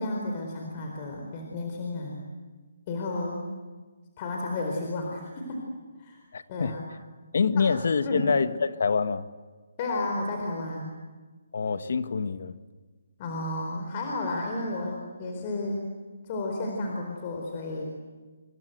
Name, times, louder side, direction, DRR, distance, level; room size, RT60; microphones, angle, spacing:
voice 1, 0.0-2.2 2.9-3.4 4.2-5.6 6.0-6.2 6.5-6.8 7.5-7.7 8.0-8.3 9.8-10.9 13.2-15.8 16.2-17.8, left 2 dB, 30° left, 4.4 m, -32 dB
voice 2, 6.3-6.7 7.3-9.3 11.5-12.6, left 5 dB, 65° left, 1.5 m, -26 dB
27.5 x 24.5 x 8.0 m
hypercardioid pair, 160°, 0 cm